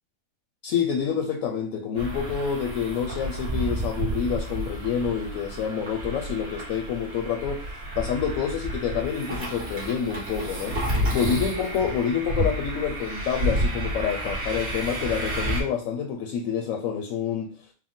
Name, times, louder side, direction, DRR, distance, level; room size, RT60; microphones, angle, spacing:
voice 1, 0.6-7.7 8.0-17.5, left 7 dB, 70° left, 4 dB, 0.9 m, -28 dB
sound 1, 2.0-15.6, right 1 dB, 45° right, 2.0 m, -30 dB
4.7 x 2.1 x 3.6 m, 0.38 s
omnidirectional pair, 1.5 m